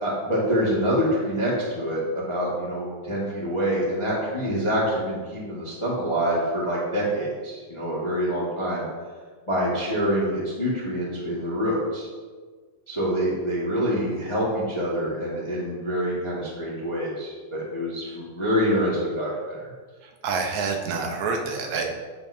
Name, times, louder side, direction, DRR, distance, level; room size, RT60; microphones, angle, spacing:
voice 1, 0.0-8.9 9.5-12.1 12.9-19.3, equal, 15° left, -6 dB, 0.9 m, -26 dB
voice 2, 20.2-21.9, right 4 dB, 80° right, 2 dB, 2.2 m, -27 dB
8.8 x 6.9 x 2.7 m, 1.5 s
omnidirectional pair, 3.3 m